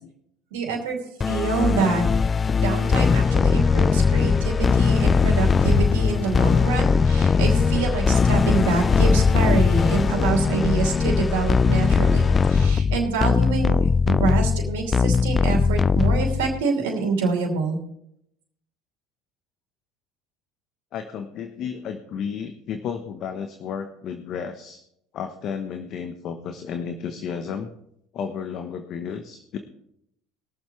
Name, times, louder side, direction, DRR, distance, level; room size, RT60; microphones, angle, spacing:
voice 1, 0.5-1.0 1.3-2.0 2.6-17.8, right 5 dB, 80° right, 1 dB, 2.8 m, -26 dB
sound 1, 1.2-16.6, left 5 dB, 30° left, 0.3 m, -20 dB
voice 2, 20.9-24.8 25.1-27.7 28.1-29.6, left 7 dB, 55° left, 7 dB, 1.1 m, -32 dB
21.5 x 7.3 x 3.3 m, 0.75 s
hypercardioid pair, 75°, 0 cm